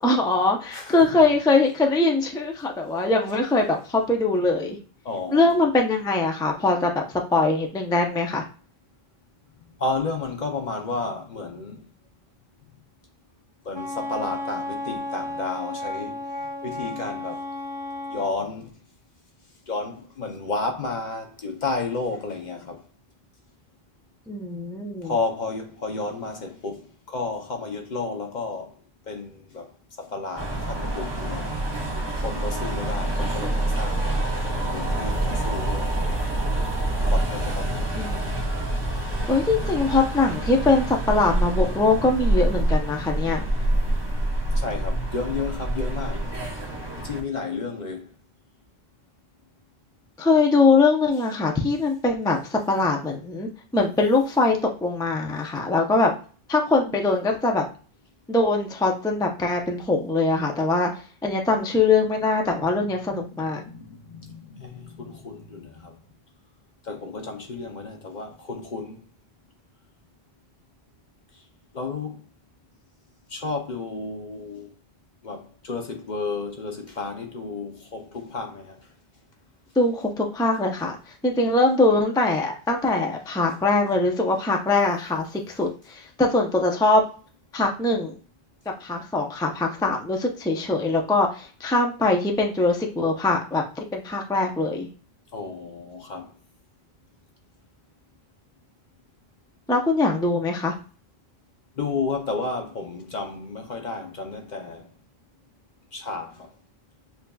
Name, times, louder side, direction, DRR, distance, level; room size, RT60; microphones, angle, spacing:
voice 1, 0.0-4.8 5.3-8.4 24.3-25.1 38.0-38.4 39.3-43.4 50.2-56.1 56.5-57.6 58.3-60.9 61.2-63.6 79.8-81.0 81.2-87.0 87.5-88.2 88.8-93.6 93.9-94.9 99.7-100.7, left 3 dB, 5° left, 0.4 m, -22 dB
voice 2, 0.7-1.2 5.0-5.7 9.6-11.9 13.6-16.3 16.6-17.5 18.1-18.8 19.7-22.8 25.0-28.8 29.1-29.7 30.0-31.6 32.2-34.1 34.5-36.4 37.1-38.2 44.5-46.3 47.0-48.1 62.8-66.0 66.8-69.0 71.7-72.2 73.3-74.7 75.2-78.9 95.3-96.3 101.8-104.9 105.9-106.5, left 3 dB, 50° left, 0.7 m, -32 dB
Wind instrument woodwind instrument, 13.7-18.3, left 1 dB, 55° right, 1.6 m, -33 dB
sound 1, 30.4-47.2, right 1 dB, 25° right, 1.0 m, -26 dB
6.9 x 2.7 x 2.3 m
omnidirectional pair, 1.1 m